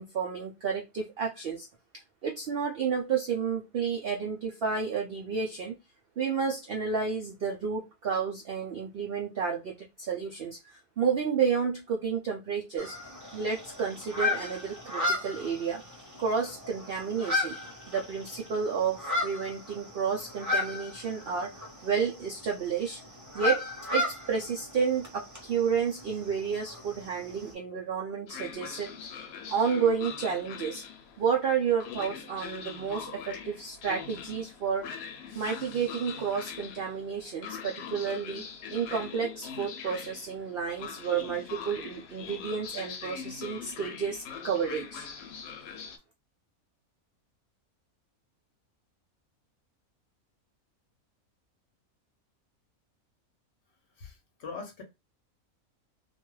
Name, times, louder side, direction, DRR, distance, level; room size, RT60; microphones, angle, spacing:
voice 1, 0.0-1.7 2.2-5.8 6.2-12.9 13.3-15.8 16.2-17.6 17.9-21.5 21.8-23.0 23.3-23.6 23.9-29.2 29.5-30.8 31.2-34.9 35.3-38.4 38.7-45.1, right 6 dB, 75° right, 0 dB, 0.5 m, -31 dB
sound 1, 12.8-27.5, left 2 dB, 20° right, 0.5 m, -35 dB
Train, 28.3-46.0, left 7 dB, 75° left, 1.0 m, -42 dB
voice 2, 54.0-54.8, left 5 dB, 60° left, 3 dB, 0.9 m, -42 dB
2.5 x 2.3 x 3.0 m, 0.23 s
omnidirectional pair, 1.5 m